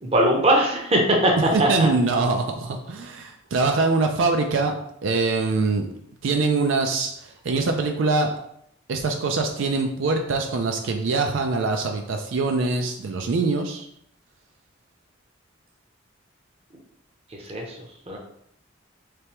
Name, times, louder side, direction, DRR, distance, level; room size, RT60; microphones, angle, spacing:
voice 1, 0.0-1.3 1.6-1.9 17.5-17.6 18.1-18.2, right 1 dB, 30° right, 0 dB, 0.7 m, -20 dB
voice 2, 1.5-4.7 5.0-5.9 6.2-8.3 8.9-13.9, right 3 dB, 80° right, 4 dB, 0.4 m, -23 dB
3.4 x 3.3 x 2.9 m, 0.73 s
head